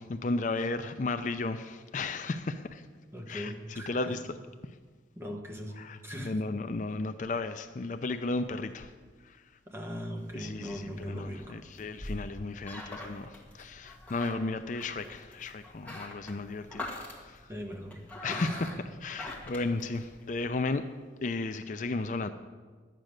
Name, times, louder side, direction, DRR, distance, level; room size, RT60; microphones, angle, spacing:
voice 1, 0.1-2.9 3.3-4.2 4.6-4.8 5.8-8.9 9.2-9.5 10.3-17.5 18.2-20.9 21.2-22.3, left 3 dB, 45° left, 9 dB, 0.5 m, -34 dB
voice 2, 3.1-4.2 5.1-6.4 9.7-11.6 17.5-18.0 18.3-18.7, equal, 15° right, 2 dB, 1.3 m, -40 dB
sound 1, 10.2-20.5, left 2 dB, 10° left, 1.8 m, -44 dB
12.0 x 9.1 x 6.5 m, 1.5 s
head